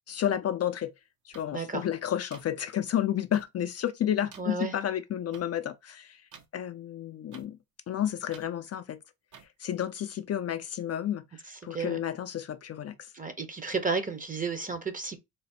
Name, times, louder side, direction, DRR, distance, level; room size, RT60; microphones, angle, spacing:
voice 1, 0.1-0.9 1.3-6.2 6.5-7.6 7.9-9.0 9.6-11.2 11.6-12.9, left 10 dB, 45° left, 0.5 m, -31 dB
sound 1, 1.3-1.4 2.3-2.4 3.3-3.4 4.3-4.4 5.3-5.4 6.3-6.5 7.3-7.5 8.3-8.5 9.3-9.5, right 7 dB, 55° right, 0.8 m, -49 dB
voice 2, 1.5-1.9 4.4-4.7 11.5-12.0 13.1-15.2, right 4 dB, 25° right, 0.7 m, -32 dB
3.3 x 2.0 x 4.1 m
cardioid pair, 95°, 35 cm